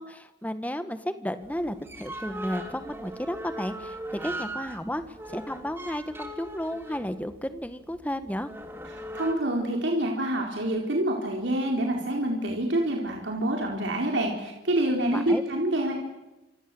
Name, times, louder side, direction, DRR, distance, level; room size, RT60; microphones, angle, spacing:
voice 1, 0.0-8.5 15.1-15.4, equal, 10° left, 10 dB, 1.6 m, -33 dB
sound 1, 1.4-9.3, right 1 dB, 15° right, 3.0 m, -39 dB
voice 2, 9.1-15.9, right 1 dB, 85° right, 0 dB, 4.5 m, -27 dB
27.0 x 26.5 x 7.9 m, 1.0 s
head